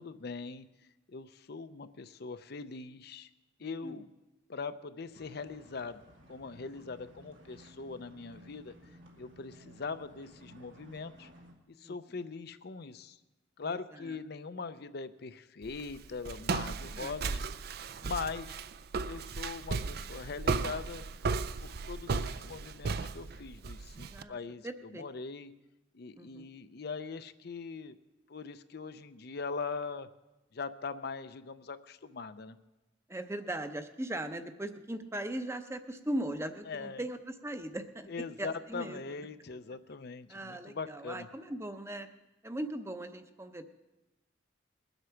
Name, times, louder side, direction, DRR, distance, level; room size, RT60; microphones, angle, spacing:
voice 1, 0.0-3.3 3.6-4.1 4.5-6.0 6.3-8.7 9.2-11.3 11.7-13.2 13.6-17.4 18.0-18.6 19.1-21.0 21.6-25.5 25.9-27.9 28.3-30.1 30.5-32.6 36.7-37.0 38.1-41.3, left 4 dB, 55° left, 11 dB, 0.6 m, -41 dB
voice 2, 3.6-4.0 11.8-11.9 13.6-14.2 16.9-17.4 24.1-24.4 24.6-25.0 26.2-26.5 33.1-38.1 38.4-39.0 40.3-42.1 42.4-43.6, right 1 dB, 15° right, 8 dB, 0.7 m, -39 dB
sound 1, 5.1-11.5, right 1 dB, 80° right, 2.3 m, -56 dB
Walk footsteps, 15.6-24.2, right 4 dB, 55° right, 0.5 m, -35 dB
21.0 x 8.1 x 5.8 m, 1.0 s
head